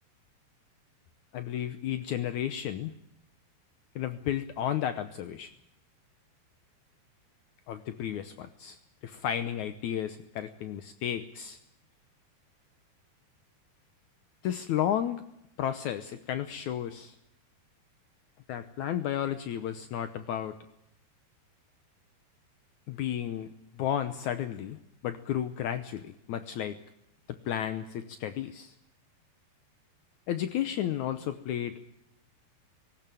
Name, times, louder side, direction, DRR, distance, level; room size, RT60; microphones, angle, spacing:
voice 1, 1.3-2.9 3.9-5.5 7.7-11.6 14.4-15.2 15.6-17.1 18.5-20.6 22.9-23.5 23.8-24.8 25.0-26.8 27.3-28.7 30.3-31.7, left 10 dB, 80° left, 10 dB, 1.7 m, -33 dB
19.5 x 18.0 x 9.1 m, 0.82 s
omnidirectional pair, 4.7 m